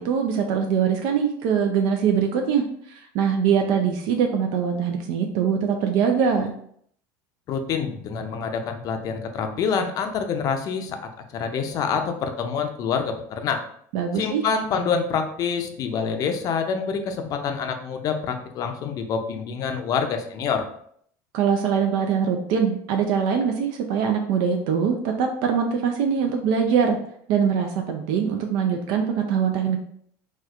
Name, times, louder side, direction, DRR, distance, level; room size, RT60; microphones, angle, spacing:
voice 1, 0.0-6.5 13.9-14.4 21.3-27.0 27.3-29.8, right 7 dB, 65° right, 3 dB, 0.4 m, -23 dB
voice 2, 7.5-11.0 11.3-13.6 14.1-20.6, left 6 dB, 45° left, 6 dB, 0.5 m, -26 dB
4.1 x 2.3 x 2.4 m, 0.65 s
supercardioid pair, 120°, 9 cm